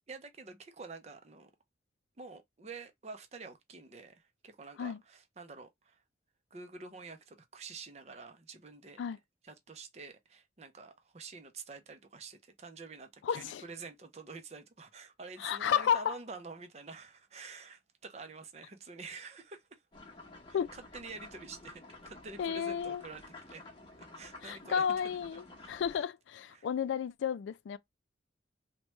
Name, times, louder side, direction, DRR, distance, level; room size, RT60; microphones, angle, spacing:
voice 1, 0.1-1.5 2.2-6.0 6.5-9.0 9.4-19.8 20.5-23.6 24.0-25.0 25.6-26.1 26.5-26.7, right 4 dB, 35° right, 0.5 m, -48 dB
voice 2, 13.2-13.6 15.4-16.2 20.5-20.7 22.4-23.0 24.4-27.8, left 8 dB, 85° left, 0.3 m, -32 dB
sound 1, 19.9-26.0, left 2 dB, 25° left, 0.9 m, -52 dB
3.0 x 2.2 x 3.0 m
head